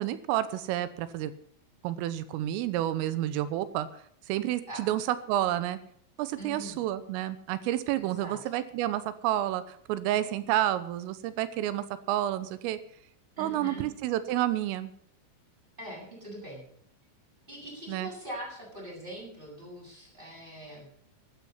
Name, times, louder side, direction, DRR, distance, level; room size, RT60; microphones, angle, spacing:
voice 1, 0.0-1.3 1.8-3.9 4.3-5.8 6.2-12.8 13.4-14.9 17.9-18.1, right 13 dB, 85° right, 13 dB, 3.5 m, -30 dB
voice 2, 6.4-6.8 8.0-8.4 13.4-13.9 15.8-16.6 17.5-20.9, right 1 dB, 10° right, -3 dB, 7.9 m, -42 dB
13.0 x 12.5 x 5.6 m, 0.65 s
omnidirectional pair, 5.9 m